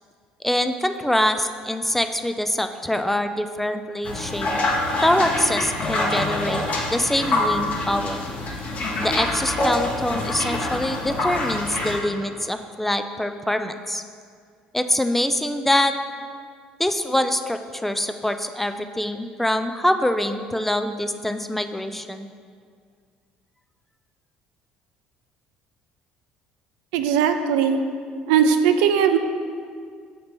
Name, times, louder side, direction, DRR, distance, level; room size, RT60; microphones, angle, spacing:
voice 1, 0.4-4.5 5.0-6.6 6.9-8.2 9.0-14.0 14.7-15.9 16.8-22.3, left 1 dB, 5° left, 8 dB, 0.3 m, -24 dB
sound 1, 4.0-12.0, left 2 dB, 50° left, 1.0 m, -25 dB
voice 2, 26.9-27.8 28.3-29.2, right 7 dB, 80° right, 7 dB, 0.4 m, -19 dB
6.7 x 2.9 x 5.2 m, 2.1 s
hypercardioid pair, 70°, 3 cm